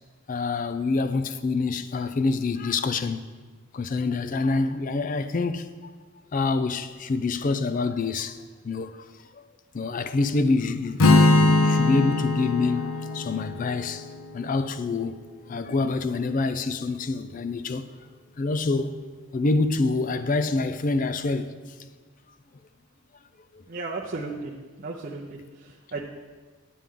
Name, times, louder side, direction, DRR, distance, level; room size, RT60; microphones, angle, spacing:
voice 1, 0.3-3.2 3.7-5.7 6.3-8.4 8.6-8.9 9.7-14.1 14.3-15.2 15.5-17.9 18.4-19.0 19.3-21.5, left 3 dB, 40° left, 0.4 m, -26 dB
Strum, 11.0-15.2, left 2 dB, 85° left, 0.7 m, -22 dB
voice 2, 23.7-24.5 24.8-26.0, right 3 dB, 45° right, 0.7 m, -35 dB
9.1 x 8.5 x 3.7 m
head